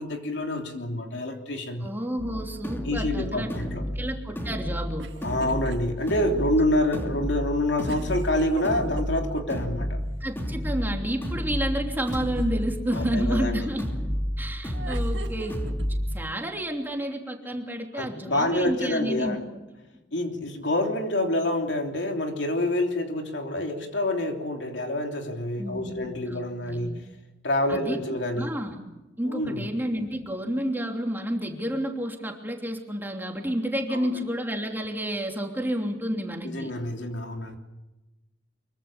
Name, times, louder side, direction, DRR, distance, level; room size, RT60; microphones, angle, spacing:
voice 1, 0.0-1.9 2.8-3.8 5.2-10.0 12.9-13.7 17.9-19.4 20.1-27.0 27.4-28.5 29.3-29.6 33.9-34.1 36.4-37.6, left 1 dB, 70° left, 3 dB, 3.2 m, -27 dB
voice 2, 1.8-3.5 3.9-5.0 10.2-13.9 14.4-15.6 15.8-19.4 25.6-26.9 27.7-28.8 29.2-36.7, equal, 10° right, 2 dB, 3.1 m, -30 dB
sound 1, 2.2-16.2, equal, 10° left, 2.8 m, -31 dB
sound 2, 5.0-5.8 6.2-6.3 7.9-9.6 12.1-12.7 14.7-15.9, right 2 dB, 75° right, 1.9 m, -40 dB
24.5 x 23.0 x 7.2 m, 1.0 s
head